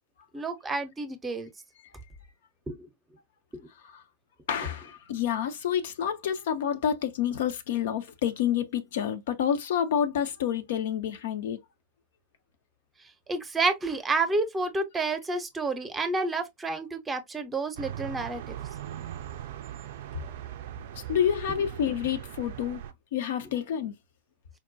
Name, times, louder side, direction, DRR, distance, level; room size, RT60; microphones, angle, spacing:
voice 1, 0.3-1.5 2.7-2.9 3.5-3.7 13.3-18.6, right 3 dB, 15° right, 0.7 m, -30 dB
voice 2, 4.5-11.6 20.9-22.8 23.1-23.9, left 9 dB, 55° left, 0.5 m, -28 dB
sound 1, 17.8-22.9, right 11 dB, 55° right, 0.4 m, -39 dB
4.6 x 2.1 x 2.6 m
figure-of-eight pair, 90°, 0 cm